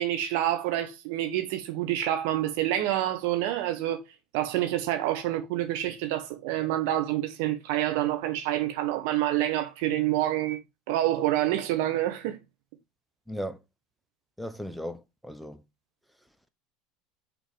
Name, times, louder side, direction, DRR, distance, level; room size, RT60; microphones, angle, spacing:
voice 1, 0.0-4.0 4.3-10.6 10.9-12.4, right 13 dB, 70° right, 1.5 m, -27 dB
voice 2, 13.3-13.6 14.4-15.6, equal, ahead, 1.0 m, -36 dB
6.3 x 4.0 x 5.2 m
hypercardioid pair, 80°, 0 cm